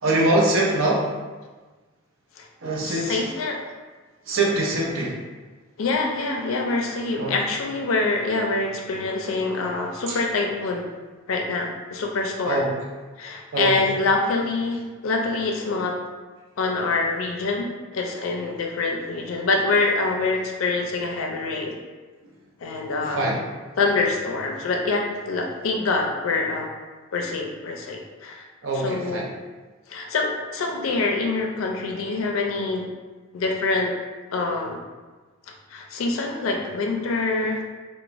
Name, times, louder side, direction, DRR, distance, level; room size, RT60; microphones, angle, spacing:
voice 1, 0.0-1.1 2.6-3.2 4.3-5.2 7.2-7.3 10.1-10.2 12.4-12.7 13.5-13.7 23.1-23.4 28.6-29.3, right 2 dB, 70° right, -3 dB, 0.5 m, -23 dB
voice 2, 2.8-3.6 5.8-10.9 11.3-12.6 13.2-15.9 16.6-21.7 22.6-23.2 23.8-26.7 27.1-28.4 28.7-29.3 29.9-32.9 33.3-33.9 34.3-34.8 35.7-37.6, left 3 dB, 75° left, 1 dB, 0.4 m, -25 dB
3.1 x 2.1 x 2.4 m, 1.3 s
head